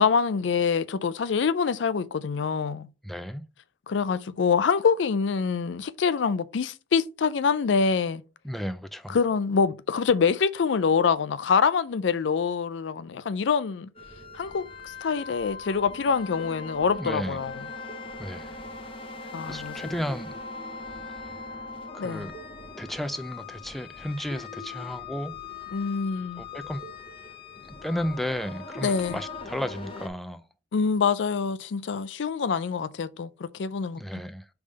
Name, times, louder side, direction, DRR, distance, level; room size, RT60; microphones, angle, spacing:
voice 1, 0.0-2.9 3.9-8.2 9.1-13.9 14.3-14.7 15.0-17.5 19.3-19.8 22.0-22.3 25.7-26.4 28.8-29.2 30.7-34.0, left 5 dB, 75° left, 0.4 m, -25 dB
voice 2, 3.0-3.4 8.4-9.2 17.0-17.4 18.2-18.6 19.4-20.3 21.2-21.3 21.9-22.3 22.8-25.3 26.4-26.8 27.8-30.4 34.0-34.5, equal, ahead, 0.4 m, -33 dB
sound 1, 13.9-30.1, left 4 dB, 30° left, 1.0 m, -40 dB
5.0 x 3.5 x 5.3 m
head